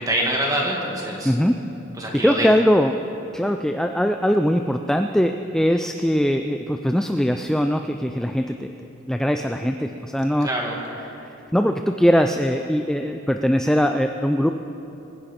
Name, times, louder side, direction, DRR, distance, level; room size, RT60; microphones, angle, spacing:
voice 1, 0.0-1.3 2.0-2.5 10.4-10.8, right 1 dB, 20° right, -2 dB, 2.0 m, -25 dB
voice 2, 1.2-1.6 2.1-3.0 3.3-8.7 9.1-10.5 11.5-14.5, equal, 5° left, 6 dB, 0.3 m, -21 dB
24.0 x 10.0 x 4.3 m, 3.0 s
head